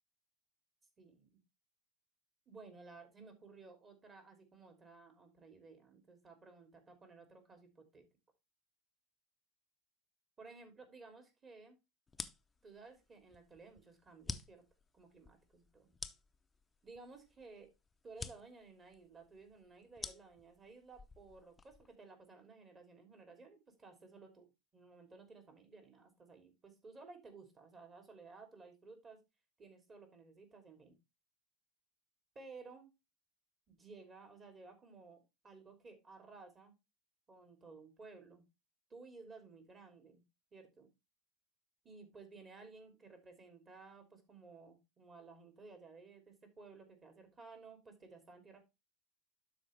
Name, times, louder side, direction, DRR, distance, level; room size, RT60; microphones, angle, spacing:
voice 1, 1.0-1.4 2.5-6.7 7.0-8.1 10.4-11.8 12.6-14.6 14.9-15.9 16.8-17.7 18.0-29.2 29.6-31.0 32.3-32.9 33.7-36.7 37.3-38.4 38.9-40.2 40.5-40.9 41.8-48.6, right 4 dB, 30° right, 5 dB, 2.9 m, -56 dB
sound 1, 12.1-22.0, left 4 dB, 20° left, 0.7 m, -50 dB
12.0 x 4.3 x 3.3 m, 0.24 s
hypercardioid pair, 75°, 0 cm